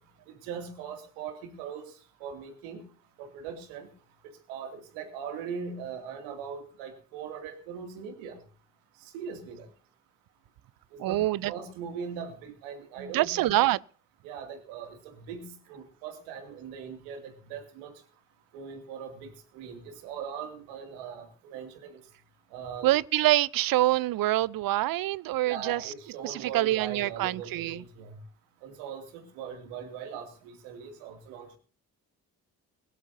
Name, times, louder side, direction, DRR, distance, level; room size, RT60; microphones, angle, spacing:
voice 1, 0.4-1.8 2.2-2.8 3.2-3.9 4.5-8.4 9.1-9.7 10.9-11.2 11.4-13.5 14.2-17.9 18.5-22.0 22.5-22.9 25.5-28.2 28.6-31.6, right 6 dB, 75° right, 2.6 m, -40 dB
voice 2, 11.0-11.5 13.0-13.8 22.8-25.9 26.2-27.8, right 16 dB, 50° right, 0.7 m, -26 dB
22.0 x 12.0 x 2.7 m
hypercardioid pair, 40°, 45 cm